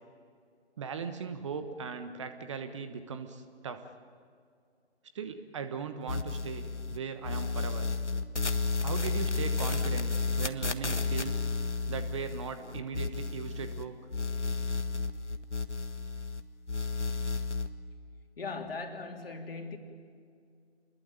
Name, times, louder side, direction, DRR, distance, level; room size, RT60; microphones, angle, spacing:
voice 1, 0.8-3.8 5.1-7.9 8.8-10.1 10.4-11.4 11.9-14.0, right 6 dB, 25° right, 9 dB, 1.2 m, -38 dB
sound 1, 6.1-7.0 7.2-13.8 14.1-16.4 16.7-17.7, left 3 dB, 85° left, 1.7 m, -32 dB
voice 2, 18.4-19.8, left 4 dB, 55° left, 3 dB, 3.4 m, -39 dB
29.0 x 21.5 x 9.2 m, 2.3 s
figure-of-eight pair, 145°, 34 cm